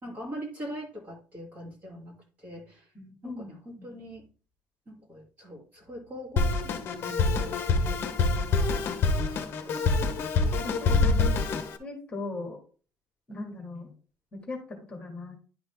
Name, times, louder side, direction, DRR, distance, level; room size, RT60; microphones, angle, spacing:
voice 1, 0.0-2.8 3.2-4.3 4.9-8.9 9.3-9.9 10.4-11.0 13.3-13.6, equal, 30° right, -2 dB, 2.7 m, -43 dB
voice 2, 2.9-4.0 10.6-11.3 11.8-12.6 13.3-13.9 14.3-15.4, left 2 dB, 20° left, 1 dB, 1.8 m, -39 dB
Drum kit, 6.4-11.8, left 3 dB, 40° left, 1.0 m, -26 dB
11.0 x 4.0 x 3.5 m, 0.37 s
cardioid pair, 180°, 6 cm